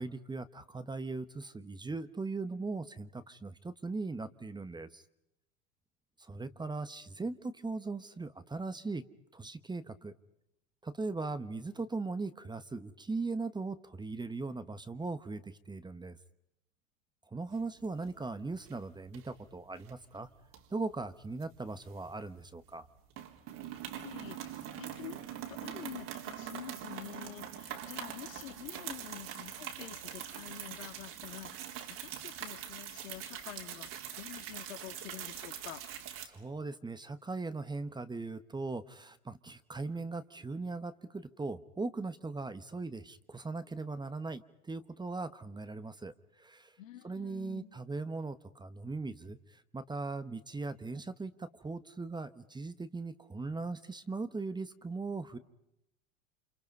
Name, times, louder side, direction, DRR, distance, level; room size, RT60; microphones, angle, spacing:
voice 1, 0.0-5.0 6.2-9.0 9.3-10.1 10.8-16.2 17.3-20.3 20.7-22.9 36.2-46.8 47.0-55.4, right 3 dB, 10° right, 13 dB, 1.1 m, -39 dB
sound 1, 17.6-18.3 18.5-18.8 19.1-19.9 20.5-22.4 22.7-22.9 23.1-36.3, right 10 dB, 55° right, 4.1 m, -43 dB
voice 2, 23.9-25.2 25.5-35.8 46.8-47.7, left 12 dB, 85° left, 5 dB, 2.9 m, -48 dB
29.5 x 27.0 x 5.4 m, 0.84 s
hypercardioid pair, 105°, 39 cm